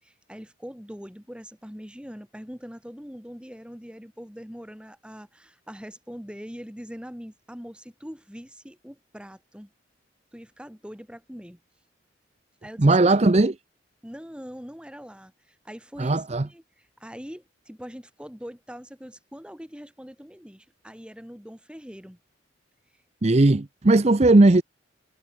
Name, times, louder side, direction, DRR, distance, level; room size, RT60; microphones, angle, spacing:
voice 1, 0.0-9.7 10.3-11.6 12.6-13.2 14.0-22.2, equal, 5° right, 3.5 m, -42 dB
voice 2, 12.8-13.5 16.0-16.5 23.2-24.6, right 2 dB, 35° right, 0.6 m, -17 dB
head